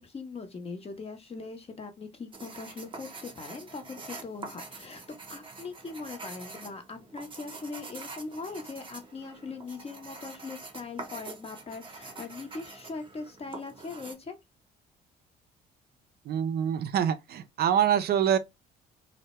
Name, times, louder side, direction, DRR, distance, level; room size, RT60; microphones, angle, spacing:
voice 1, 0.0-14.4, left 4 dB, 30° left, 0.7 m, -41 dB
sound 1, 2.3-14.2, right 3 dB, 25° right, 0.7 m, -45 dB
voice 2, 16.3-18.4, right 9 dB, 55° right, 0.4 m, -25 dB
2.1 x 2.1 x 2.8 m
supercardioid pair, 70°, 20 cm